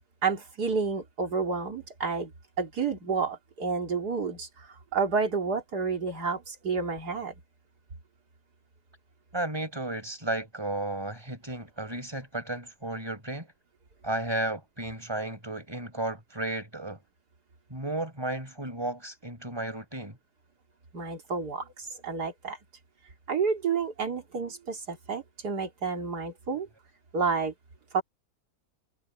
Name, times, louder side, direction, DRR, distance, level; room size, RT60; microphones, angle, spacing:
voice 1, 0.2-2.3 2.6-4.7 4.9-7.3 20.9-22.6 23.3-26.7 27.1-27.5 27.9-28.0, right 5 dB, 85° right, 3.4 m, -30 dB
voice 2, 9.3-13.5 14.0-17.0 17.7-20.2, right 2 dB, 15° right, 5.3 m, -33 dB
omnidirectional pair, 1.7 m